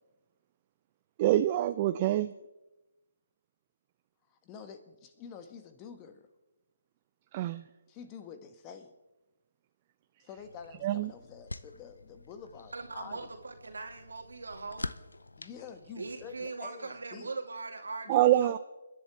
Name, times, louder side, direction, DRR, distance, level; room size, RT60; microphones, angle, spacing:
voice 1, 1.2-2.3 7.3-7.6 10.8-11.1 18.1-18.6, right 13 dB, 30° right, 12 dB, 0.4 m, -25 dB
voice 2, 4.4-6.3 7.9-8.9 10.2-13.3 15.4-17.3 18.0-18.6, left 7 dB, 25° left, 8 dB, 1.4 m, -48 dB
sound 1, 10.4-16.5, left 2 dB, 80° left, 0.6 m, -46 dB
voice 3, 12.7-14.9 16.0-18.5, right 3 dB, 75° right, 4 dB, 2.4 m, -40 dB
29.5 x 10.5 x 3.6 m, 1.0 s
figure-of-eight pair, 145°, 0 cm